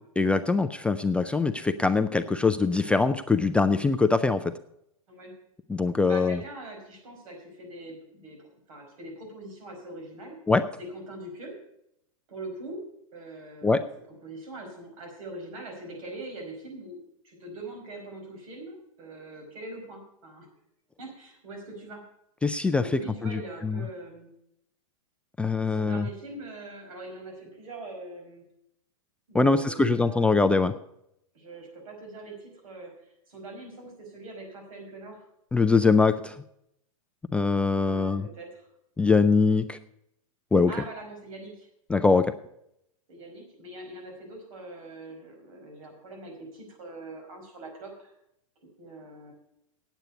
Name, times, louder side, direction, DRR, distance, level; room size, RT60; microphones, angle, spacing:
voice 1, 0.2-4.4 5.7-6.4 10.5-10.6 13.6-13.8 22.4-22.8 23.2-23.8 25.4-26.0 29.3-30.7 35.5-36.3 37.3-38.2 39.0-39.8 40.5-40.7 41.9-42.3, left 4 dB, 5° left, 9 dB, 0.3 m, -23 dB
voice 2, 6.1-10.4 10.8-11.5 12.3-12.8 13.1-13.9 14.2-17.0 17.2-20.5 21.0-22.0 22.8-24.3 25.7-28.4 29.3-30.3 31.3-35.2 37.8-38.6 40.7-41.7 43.1-48.1 48.8-49.3, right 2 dB, 75° right, 2 dB, 5.2 m, -42 dB
9.2 x 8.1 x 8.2 m, 0.77 s
hypercardioid pair, 125°, 18 cm